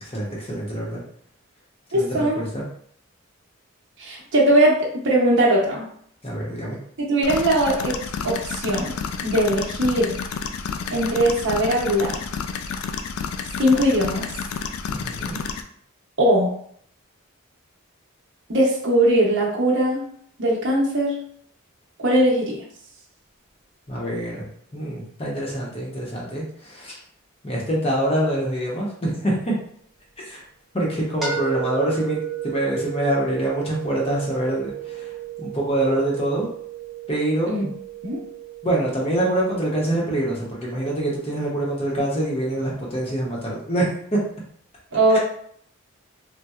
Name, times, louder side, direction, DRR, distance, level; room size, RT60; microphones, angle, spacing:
voice 1, 0.0-1.0 1.9-2.7 6.2-6.8 14.9-15.4 23.9-24.5 24.7-27.0 27.4-29.6 30.2-30.4 30.7-35.1 35.4-36.5 37.1-37.5 38.6-44.2 45.1-45.2, right 1 dB, 30° left, -4 dB, 0.9 m, -25 dB
voice 2, 1.9-2.4 4.0-5.9 7.0-8.0 8.2-8.9 9.2-10.2 10.9-12.2 13.6-14.3 16.2-16.5 18.5-20.0 20.4-21.1 22.0-22.6 37.4-37.7 38.0-38.2 44.9-45.2, right 1 dB, 60° right, -3 dB, 0.8 m, -20 dB
sound 1, 7.2-15.6, left 5 dB, 85° left, 0.3 m, -30 dB
sound 2, 31.2-41.1, right 9 dB, ahead, 0.8 m, -34 dB
4.2 x 2.2 x 2.3 m, 0.64 s
head